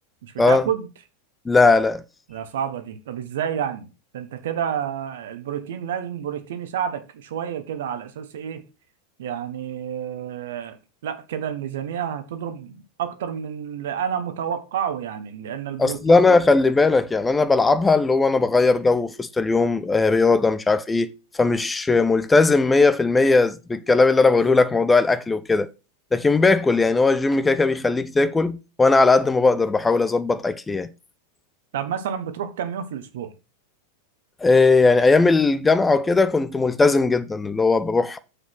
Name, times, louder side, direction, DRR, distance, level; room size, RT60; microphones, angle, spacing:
voice 1, 0.2-0.9 2.3-3.9 4.1-8.6 9.2-16.2 31.7-33.3, right 9 dB, 55° right, 1.3 m, -29 dB
voice 2, 1.5-2.0 15.8-25.7 26.1-30.9 34.4-38.2, left 3 dB, 10° left, 0.7 m, -18 dB
7.2 x 6.7 x 6.1 m
figure-of-eight pair, 90°, 0 cm